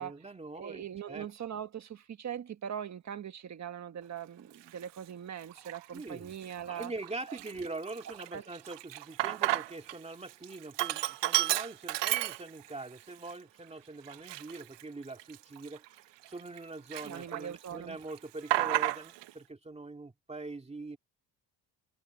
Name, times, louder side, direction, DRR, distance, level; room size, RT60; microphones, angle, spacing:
voice 1, 0.0-1.3 5.9-6.3 6.7-15.8 16.3-21.0, right 2 dB, 15° right, 2.3 m, -43 dB
voice 2, 0.5-6.9 7.3-7.4 8.3-8.4 17.0-18.0, right 9 dB, 40° right, 1.5 m, -41 dB
Sink (filling or washing), 4.7-4.8 5.5-6.0 6.4-6.5 6.8-10.0 10.3-12.8 13.3-13.4 14.0-16.6 16.9-17.7 17.9-19.3, right 15 dB, 85° right, 0.8 m, -32 dB
cardioid pair, 145°, 41 cm